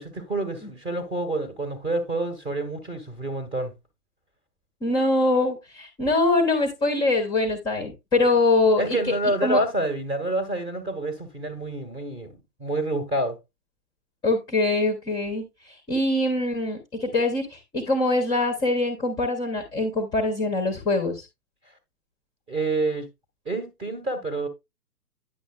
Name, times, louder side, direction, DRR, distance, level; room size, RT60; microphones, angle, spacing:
voice 1, 0.0-3.7 8.8-13.4 22.5-23.1 23.4-24.5, right 2 dB, 10° right, 1.2 m, -28 dB
voice 2, 4.8-9.0 9.4-9.6 14.2-21.2, left 2 dB, 10° left, 0.9 m, -23 dB
9.8 x 7.1 x 2.3 m
figure-of-eight pair, 130°, 48 cm